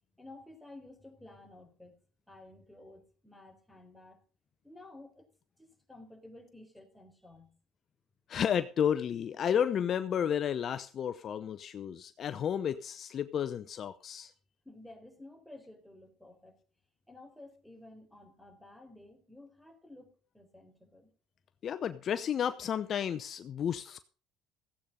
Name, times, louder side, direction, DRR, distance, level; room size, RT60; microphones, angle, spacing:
voice 1, 0.2-2.0 2.3-4.2 4.6-5.3 5.6-7.5 14.6-16.5 17.1-21.1, left 2 dB, 5° left, 4.1 m, -53 dB
voice 2, 8.3-14.3 21.6-24.0, left 8 dB, 50° left, 0.7 m, -32 dB
15.5 x 8.5 x 5.3 m
supercardioid pair, 85°, 0 cm